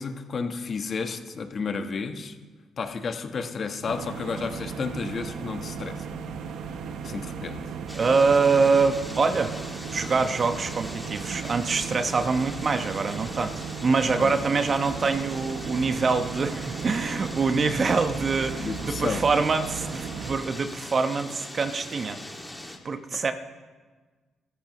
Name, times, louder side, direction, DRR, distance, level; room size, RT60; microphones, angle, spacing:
voice 1, 0.0-2.4 2.8-6.0 7.0-7.6 14.2-14.4 18.6-19.2 23.1-23.3, left 5 dB, 50° left, 6 dB, 1.3 m, -32 dB
sound 1, 3.8-20.4, right 6 dB, 80° right, 1.0 m, -36 dB
sound 2, 7.9-22.8, left 1 dB, 5° left, 2.2 m, -41 dB
voice 2, 7.9-9.5 9.9-22.2 22.8-23.3, right 4 dB, 40° right, 8 dB, 1.1 m, -24 dB
20.0 x 14.0 x 3.1 m, 1.4 s
cardioid pair, 90°, 0 cm